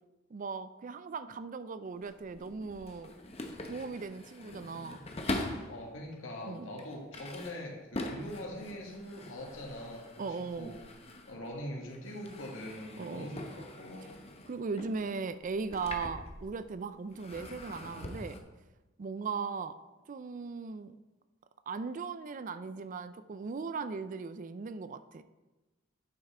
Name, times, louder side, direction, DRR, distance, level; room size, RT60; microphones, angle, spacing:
voice 1, 0.3-3.1 3.6-5.0 6.4-6.8 10.2-10.7 13.0-13.3 14.5-18.4 19.0-19.8 20.1-20.9 21.7-25.2, right 4 dB, 40° right, 12 dB, 0.4 m, -38 dB
sound 1, 1.9-5.8 6.4-11.6 11.9-16.7 17.1-18.4, left 1 dB, 30° left, 0.9 m, -43 dB
voice 2, 5.7-10.8 11.3-14.1, left 1 dB, 85° left, -1 dB, 2.0 m, -43 dB
8.8 x 5.9 x 4.3 m, 1.1 s
head